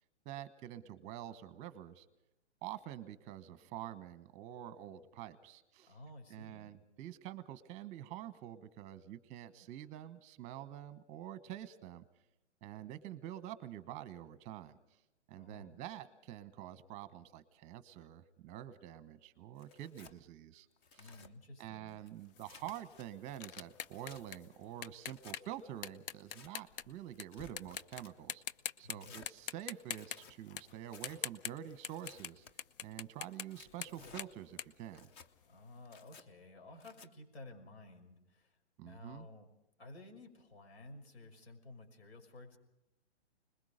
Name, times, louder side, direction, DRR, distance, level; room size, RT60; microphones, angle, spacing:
voice 1, 0.2-2.0 2.6-5.9 6.3-12.0 12.6-14.8 15.3-20.7 20.9-21.1 21.6-28.4 28.8-32.4 32.8-35.1 38.8-39.3, right 12 dB, 20° right, 14 dB, 1.2 m, -47 dB
voice 2, 5.8-6.7 15.3-15.8 21.0-22.0 28.8-29.1 35.5-38.6 38.8-39.5 39.8-42.6, left 2 dB, 65° left, 4 dB, 6.0 m, -54 dB
Tearing, 19.6-20.2 20.7-21.3 21.9-23.1 23.5-24.2 25.0-25.4 26.1-26.5 27.1-28.1 29.0-29.3 29.9-30.4 30.9-31.2 31.9-32.5 33.3-34.3 34.8-35.3 35.8-36.2 36.8-37.1, left 5 dB, 15° left, 0.7 m, -57 dB
sound 1, 22.4-27.2 27.6-28.0 28.3-29.0 29.3-32.3 32.6-35.6, left 9 dB, 50° left, 0.9 m, -44 dB
26.0 x 21.0 x 5.1 m, 0.88 s
hypercardioid pair, 150°, 34 cm